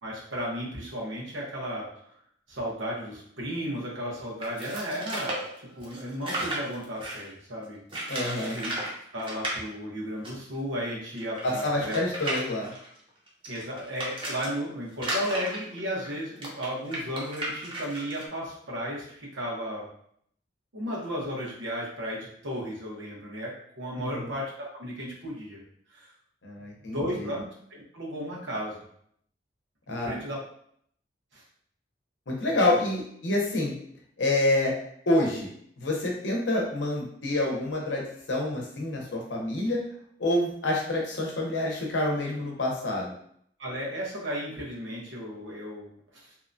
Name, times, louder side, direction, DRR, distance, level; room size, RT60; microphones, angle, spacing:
voice 1, 0.0-1.9 2.5-5.3 5.7-7.8 8.5-8.7 9.1-12.0 13.5-19.9 20.7-25.6 25.9-26.1 26.9-27.4 27.7-28.8 29.9-30.4 31.3-31.4 32.6-32.8 43.6-45.9, equal, 80° right, -4 dB, 0.9 m, -34 dB
sound 1, 4.4-7.3 7.9-8.9 9.2-9.6 10.2-10.3 10.5-10.6 11.2-14.5 14.9-18.2, right 1 dB, 30° right, 0.6 m, -34 dB
voice 2, 8.1-8.6 11.4-12.7 24.0-24.3 26.4-27.3 29.9-30.2 32.3-33.7 34.2-34.7 35.1-35.5 35.8-39.8 40.2-43.1, left 1 dB, 70° left, -1 dB, 0.7 m, -27 dB
2.8 x 2.2 x 2.5 m, 0.66 s
head